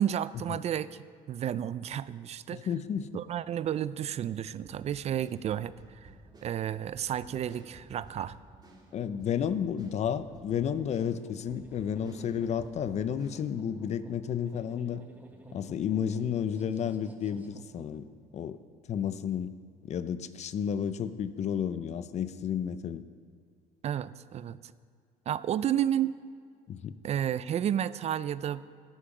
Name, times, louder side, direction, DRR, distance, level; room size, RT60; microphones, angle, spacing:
voice 1, 0.0-2.7 3.1-6.1 6.4-8.4 23.8-24.6 25.3-26.2 27.0-28.6, right 10 dB, 40° right, 16 dB, 0.4 m, -31 dB
voice 2, 2.5-3.1 8.9-15.0 15.5-18.1 18.3-18.6 18.9-19.5 19.8-23.0 26.7-27.0, left 8 dB, 45° left, 13 dB, 0.6 m, -32 dB
sound 1, 2.8-18.0, right 3 dB, 10° right, 1.3 m, -55 dB
sound 2, 4.6-13.5, right 2 dB, 25° right, 2.5 m, -54 dB
12.5 x 8.5 x 6.0 m, 2.2 s
cardioid pair, 110°, 16 cm